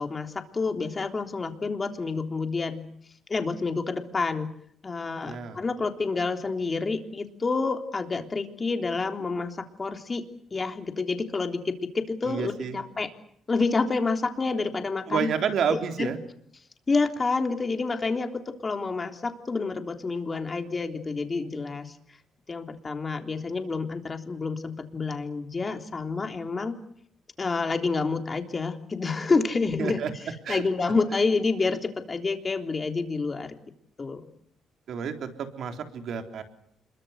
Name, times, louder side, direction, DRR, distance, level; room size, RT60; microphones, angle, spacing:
voice 1, 0.0-2.8 3.3-4.5 4.8-13.1 13.5-15.3 15.7-16.1 16.9-22.0 22.5-26.7 27.4-30.0 30.5-33.6 34.0-34.3, left 4 dB, 30° left, 6 dB, 3.5 m, -28 dB
voice 2, 5.2-5.6 12.2-12.8 15.1-16.2 29.8-30.1 30.4-30.6 34.9-36.4, right 7 dB, 65° right, 6 dB, 3.7 m, -30 dB
26.5 x 23.0 x 8.2 m, 0.66 s
cardioid pair, 90°, 0 cm